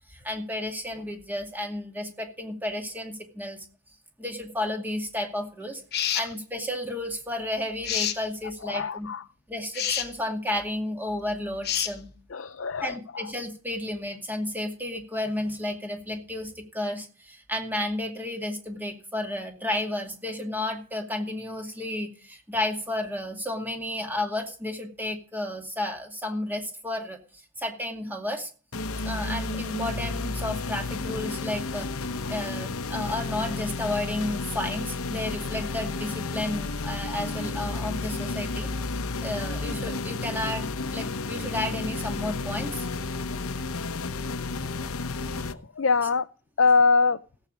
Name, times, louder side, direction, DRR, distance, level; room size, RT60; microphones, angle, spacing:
voice 1, 0.1-3.7 4.2-9.1 9.5-12.1 12.8-27.2 27.6-28.5 29.0-31.9 32.3-40.7 40.9-42.9 45.3-45.5 46.0-46.1, left 1 dB, 10° right, 4 dB, 2.3 m, -32 dB
sound 1, 5.9-6.3 7.8-8.2 9.7-10.1 11.6-11.9, left 10 dB, 50° left, 1.1 m, -27 dB
voice 2, 8.7-9.2 12.3-12.9 45.5-46.3 46.6-47.2, left 4 dB, 65° left, 10 dB, 0.5 m, -23 dB
sound 2, 28.7-45.5, left 3 dB, 85° left, 1.0 m, -32 dB
16.5 x 8.2 x 5.1 m, 0.39 s
head